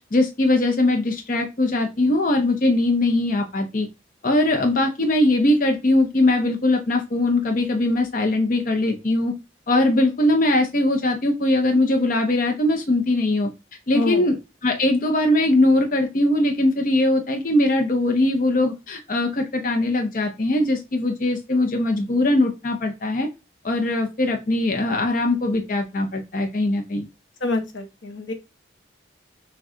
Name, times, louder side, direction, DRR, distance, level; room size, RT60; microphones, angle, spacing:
voice 1, 0.1-3.9 4.2-9.3 9.7-13.5 13.9-14.4 14.6-23.3 23.6-27.1, left 2 dB, 45° left, 4 dB, 0.6 m, -21 dB
voice 2, 13.9-14.3 27.4-28.3, left 2 dB, 80° left, 6 dB, 1.0 m, -26 dB
6.1 x 2.3 x 3.7 m, 0.26 s
head